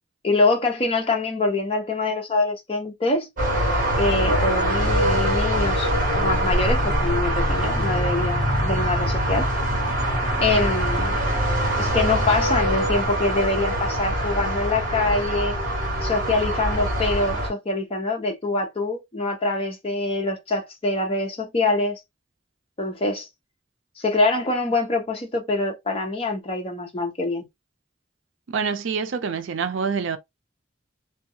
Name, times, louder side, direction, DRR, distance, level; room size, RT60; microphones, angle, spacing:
voice 1, 0.2-3.3 3.9-5.9 6.1-9.5 10.4-11.2 11.8-15.5 16.0-22.0 22.8-23.3 24.0-27.5, left 2 dB, 30° left, 0.7 m, -24 dB
sound 1, 3.4-17.5, equal, 45° right, 1.4 m, -23 dB
voice 2, 28.5-30.2, right 5 dB, 75° right, 0.4 m, -26 dB
2.7 x 2.2 x 2.6 m
head